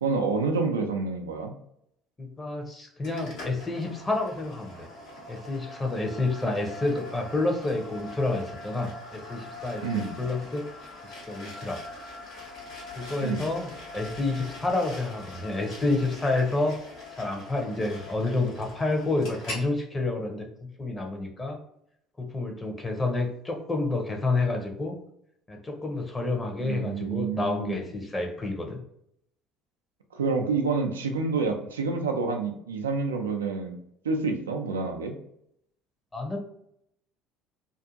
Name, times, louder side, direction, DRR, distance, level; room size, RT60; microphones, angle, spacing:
voice 1, 0.0-1.5 9.8-10.1 13.2-13.4 26.6-27.8 30.1-33.8 34.0-35.1, right 4 dB, 85° right, 4 dB, 0.4 m, -28 dB
voice 2, 2.2-4.9 5.3-10.7 11.0-11.8 13.0-13.7 13.9-16.8 17.1-20.5 20.8-21.6 22.2-25.0 25.5-28.8 36.1-36.4, left 2 dB, 20° left, 2 dB, 0.8 m, -29 dB
sound 1, 3.0-19.7, left 2 dB, 70° left, 1.2 m, -43 dB
2.5 x 2.5 x 2.5 m, 0.73 s
hypercardioid pair, 60°, 0 cm